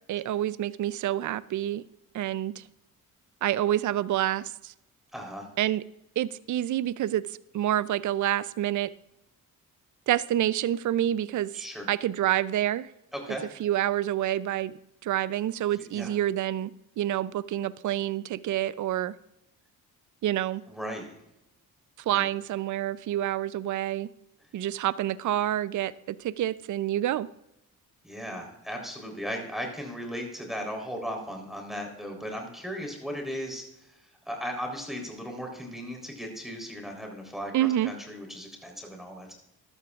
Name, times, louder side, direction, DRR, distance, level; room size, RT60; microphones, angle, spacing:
voice 1, 0.0-1.8 2.1-2.6 3.4-4.7 5.6-5.8 6.2-7.2 7.5-8.9 10.1-12.9 13.6-16.7 17.0-19.1 20.2-20.6 22.1-24.1 24.5-27.3 37.5-37.9, right 12 dB, 55° right, 17 dB, 0.5 m, -28 dB
voice 2, 5.1-5.5 11.5-11.9 13.1-13.4 15.7-16.1 20.7-21.1 22.1-22.2 28.0-33.6 34.3-39.3, equal, ahead, 1 dB, 3.7 m, -36 dB
12.5 x 12.5 x 2.4 m, 0.85 s
cardioid pair, 70°, 36 cm